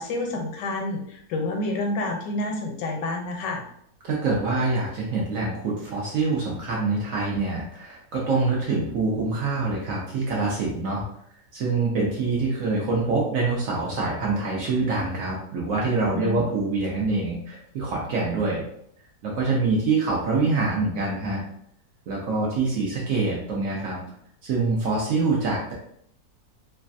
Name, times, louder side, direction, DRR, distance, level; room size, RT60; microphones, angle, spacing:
voice 1, 0.0-3.6 16.1-16.5, left 2 dB, 85° left, 2 dB, 1.3 m, -29 dB
voice 2, 4.0-11.0 11.5-18.6 19.2-21.4 22.1-24.0 24.4-25.7, right 3 dB, 65° right, -3 dB, 0.9 m, -25 dB
3.1 x 2.4 x 2.5 m, 0.68 s
omnidirectional pair, 1.9 m